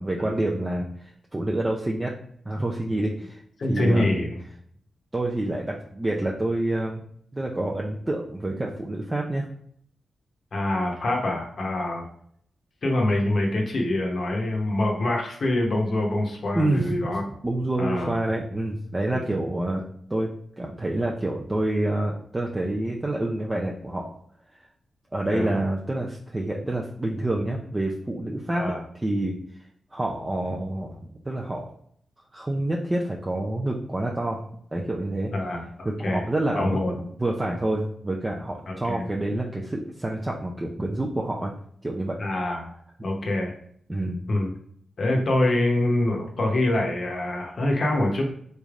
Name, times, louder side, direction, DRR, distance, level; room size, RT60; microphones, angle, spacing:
voice 1, 0.0-2.1 2.5-3.4 3.7-4.1 5.1-7.0 7.3-9.5 16.5-19.8 20.1-24.1 25.1-28.6 29.0-29.4 29.9-31.7 32.3-34.4 34.7-35.3 35.9-41.5 41.8-42.2 43.9-44.2, right 1 dB, 20° right, -1 dB, 0.4 m, -27 dB
voice 2, 3.6-4.3 10.5-12.0 12.8-17.2 17.8-18.1 19.1-19.4 25.3-25.5 28.5-28.8 35.3-36.2 36.5-36.9 38.7-39.1 42.2-42.7 43.0-43.5 44.3-44.5 45.0-48.2, left 1 dB, 55° left, 1 dB, 0.8 m, -25 dB
3.9 x 3.2 x 2.4 m, 0.64 s
wide cardioid pair, 115°, 0 cm